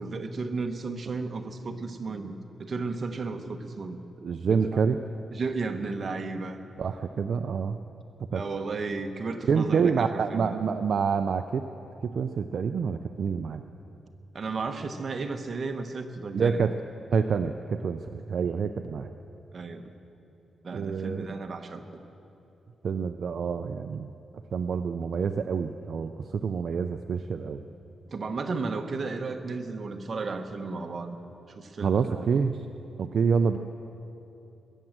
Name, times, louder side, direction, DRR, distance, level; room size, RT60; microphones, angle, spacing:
voice 1, 0.0-4.0 4.5-4.6 5.3-6.6 8.3-10.6 14.3-16.6 19.5-19.9 20.6-22.0 28.1-31.2 31.5-32.3, right 3 dB, 45° right, 5 dB, 1.1 m, -34 dB
voice 2, 4.2-5.0 6.8-7.8 8.2-8.4 9.5-11.6 12.0-13.6 16.3-16.7 17.1-19.1 20.7-21.3 22.8-24.1 24.5-27.6 31.8-32.6 33.0-33.6, right 6 dB, 60° right, 7 dB, 0.5 m, -27 dB
21.0 x 9.1 x 7.4 m, 2.9 s
wide cardioid pair, 120°, 0 cm